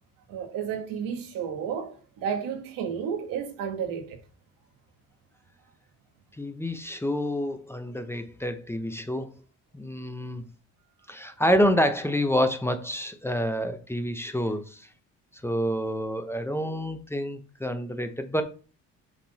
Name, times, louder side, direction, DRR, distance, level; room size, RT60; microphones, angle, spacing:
voice 1, 0.3-4.2, right 7 dB, 85° right, 1.4 m, -32 dB
voice 2, 6.4-9.3 9.7-10.4 11.1-14.9 15.4-18.4, equal, 5° left, 0.8 m, -28 dB
7.4 x 3.7 x 4.1 m
cardioid pair, 80°, 33 cm